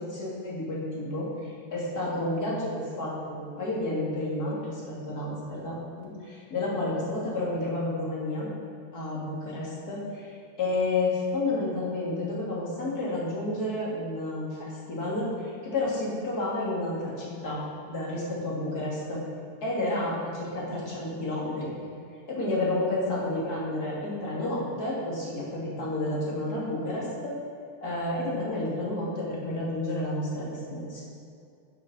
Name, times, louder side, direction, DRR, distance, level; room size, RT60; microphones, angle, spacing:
voice 1, 0.0-8.5 8.9-17.6 17.9-19.2 19.6-21.7 22.3-27.4 27.8-31.0, left 2 dB, 30° left, -6 dB, 2.9 m, -31 dB
10.5 x 6.8 x 6.2 m, 2.4 s
omnidirectional pair, 3.4 m